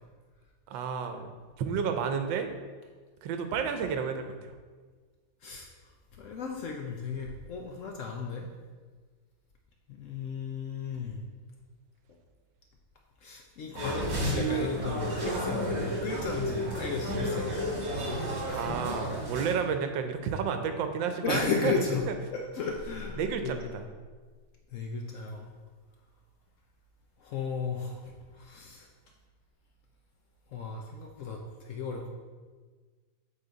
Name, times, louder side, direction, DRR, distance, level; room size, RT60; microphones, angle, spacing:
voice 1, 0.7-1.3 1.6-2.5 3.2-4.5 18.5-21.7 22.1-22.2 23.2-23.8, right 6 dB, 80° right, 7 dB, 1.4 m, -31 dB
voice 2, 6.2-8.5 9.9-11.2 13.2-17.7 18.5-18.7 21.2-22.0 22.3-23.7 24.7-25.5 27.2-28.9 30.5-32.1, left 5 dB, 85° left, 2 dB, 0.6 m, -34 dB
sound 1, 13.7-19.5, equal, 40° right, 1.5 m, -32 dB
8.0 x 3.9 x 3.9 m, 1.4 s
omnidirectional pair, 2.0 m